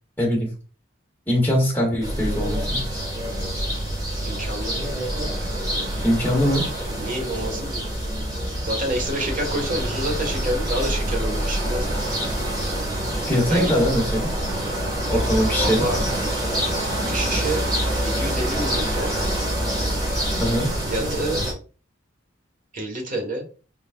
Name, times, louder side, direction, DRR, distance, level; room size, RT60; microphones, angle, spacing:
voice 1, 0.2-0.5 1.3-2.8 6.0-6.7 13.3-14.3 15.1-15.9 20.4-20.7, equal, 10° left, -4 dB, 1.7 m, -21 dB
sound 1, 2.0-21.5, right 1 dB, 20° right, 2.3 m, -26 dB
voice 2, 4.2-4.8 6.9-7.8 8.6-12.0 13.5-13.7 15.6-16.0 17.0-17.6 17.9-19.1 20.9-21.4 22.7-23.5, right 1 dB, 45° right, 2 dB, 1.3 m, -28 dB
4.4 x 4.0 x 2.3 m, 0.36 s
head